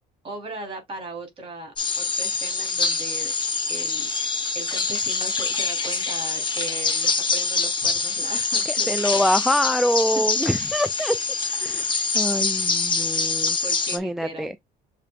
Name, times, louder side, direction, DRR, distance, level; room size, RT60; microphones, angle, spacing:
voice 1, 0.2-3.3 3.7-9.2 10.6-10.9 13.6-14.5, right 3 dB, 35° right, 3.6 m, -38 dB
sound 1, 1.8-14.0, left 4 dB, 30° left, 1.3 m, -25 dB
voice 2, 8.7-11.2 11.4-13.6 13.9-14.5, equal, ahead, 0.3 m, -25 dB
6.7 x 3.3 x 2.4 m
cardioid pair, 110°, 17 cm